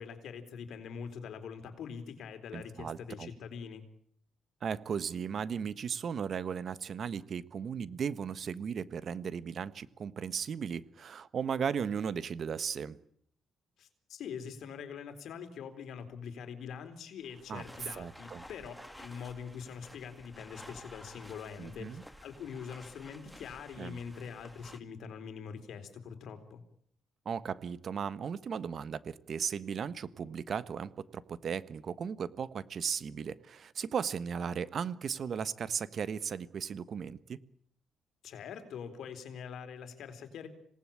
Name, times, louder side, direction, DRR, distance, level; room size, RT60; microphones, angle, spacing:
voice 1, 0.0-3.8 13.8-26.6 38.2-40.5, left 6 dB, 70° left, 8 dB, 3.9 m, -44 dB
voice 2, 2.5-3.3 4.6-13.0 17.5-18.4 21.6-22.0 23.8-24.0 27.2-37.4, right 7 dB, 55° right, 15 dB, 1.3 m, -36 dB
sound 1, 17.2-24.8, equal, 5° left, 1.8 m, -53 dB
27.0 x 18.5 x 8.8 m, 0.68 s
cardioid pair, 90°, 0 cm